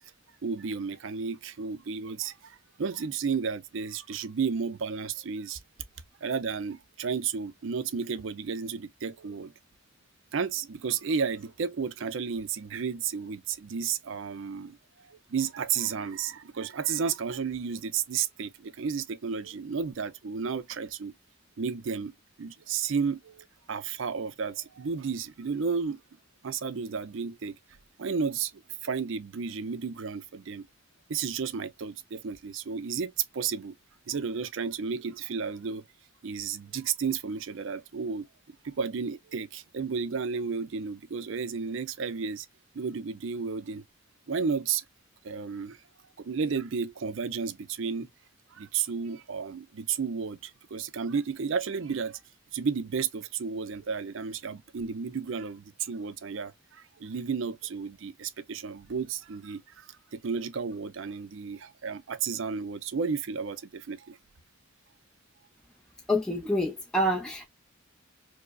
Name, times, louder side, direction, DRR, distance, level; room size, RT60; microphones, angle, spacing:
voice 1, 0.4-5.6 6.2-9.5 10.3-21.1 21.6-22.1 22.4-26.0 26.4-27.6 28.0-30.7 31.1-33.7 34.1-35.8 36.2-38.3 38.6-42.5 42.7-43.8 44.3-44.8 45.2-45.8 46.2-48.1 48.5-52.2 52.5-64.2, right 6 dB, 65° right, 0.5 m, -32 dB
voice 2, 66.1-67.5, equal, 5° left, 0.4 m, -27 dB
4.7 x 2.0 x 2.3 m
head